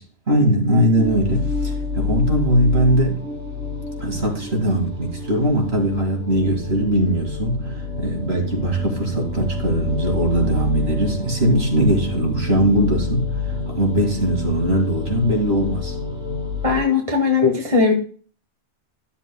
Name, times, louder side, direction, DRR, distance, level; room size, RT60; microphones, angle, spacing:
voice 1, 0.3-3.2 4.0-15.9, right 1 dB, 60° right, 0 dB, 2.5 m, -20 dB
sound 1, 1.0-16.8, left 4 dB, 80° right, 2.2 m, -28 dB
voice 2, 16.6-17.9, left 5 dB, 30° right, 1 dB, 1.6 m, -18 dB
13.0 x 7.1 x 2.2 m, 0.42 s
omnidirectional pair, 1.2 m